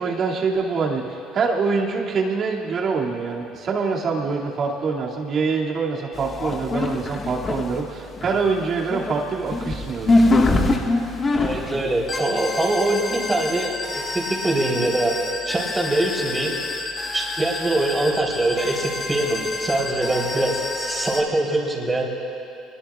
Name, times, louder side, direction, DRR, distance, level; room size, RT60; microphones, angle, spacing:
voice 1, 0.0-10.4, right 4 dB, 50° right, -2 dB, 2.5 m, -25 dB
sound 1, 6.1-7.8 8.1-21.2, left 2 dB, 35° left, 1.7 m, -26 dB
voice 2, 11.3-15.2 15.5-16.5 17.1-22.1, right 2 dB, 20° right, -3 dB, 4.0 m, -23 dB
25.0 x 21.5 x 2.5 m, 2.7 s
supercardioid pair, 85°, 0 cm